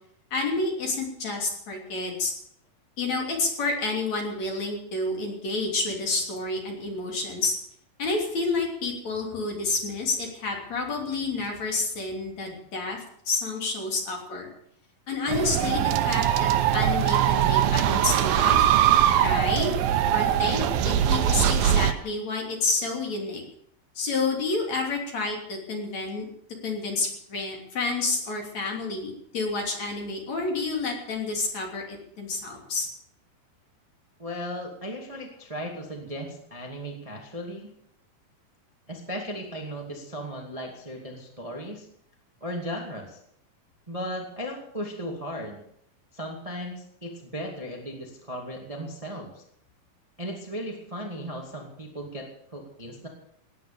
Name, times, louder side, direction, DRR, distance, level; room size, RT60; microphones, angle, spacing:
voice 1, 0.3-2.3 3.0-7.5 8.0-14.5 15.1-18.6 19.2-19.7 20.1-23.4 24.0-26.3 26.6-32.9, left 3 dB, 50° left, 1 dB, 4.2 m, -29 dB
sound 1, 15.3-21.9, right 10 dB, 85° right, 2.8 m, -22 dB
voice 2, 34.2-37.7 38.9-41.8 42.4-43.2 43.9-45.6 46.1-49.4 50.2-53.1, equal, 10° right, 1 dB, 1.7 m, -36 dB
18.0 x 9.9 x 7.0 m, 0.70 s
omnidirectional pair, 4.1 m